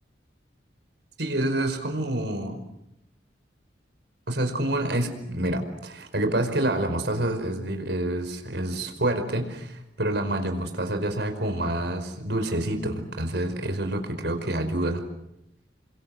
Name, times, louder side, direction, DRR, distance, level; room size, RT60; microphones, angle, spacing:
voice 1, 1.2-2.6 4.3-15.0, right 1 dB, 65° right, 7 dB, 5.1 m, -27 dB
30.0 x 25.5 x 7.8 m, 0.80 s
head